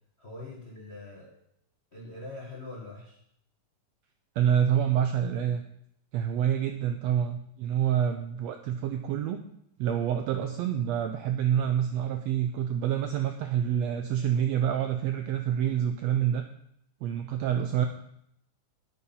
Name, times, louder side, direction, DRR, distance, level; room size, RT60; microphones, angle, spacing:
voice 1, 0.2-1.4 1.9-3.2, left 2 dB, 35° left, -2 dB, 1.0 m, -43 dB
voice 2, 4.4-5.6 6.1-9.4 9.8-16.4 17.0-17.9, right 9 dB, 80° right, 7 dB, 1.5 m, -27 dB
8.7 x 8.5 x 5.6 m, 0.74 s
omnidirectional pair, 3.6 m